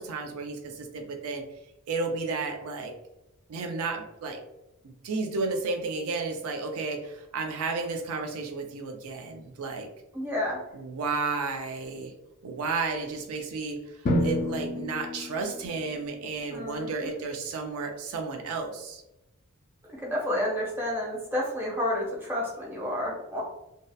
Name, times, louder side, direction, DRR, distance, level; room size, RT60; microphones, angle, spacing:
voice 1, 0.0-1.4 1.9-2.9 3.5-4.4 4.8-9.9 10.7-12.1 12.4-19.0, right 4 dB, 75° right, 4 dB, 0.4 m, -32 dB
voice 2, 10.1-10.6 16.5-17.1 20.0-23.4, left 1 dB, 10° right, -4 dB, 0.6 m, -30 dB
Drum, 14.1-16.0, left 1 dB, 40° left, 0.3 m, -29 dB
2.7 x 2.1 x 2.2 m, 0.91 s
head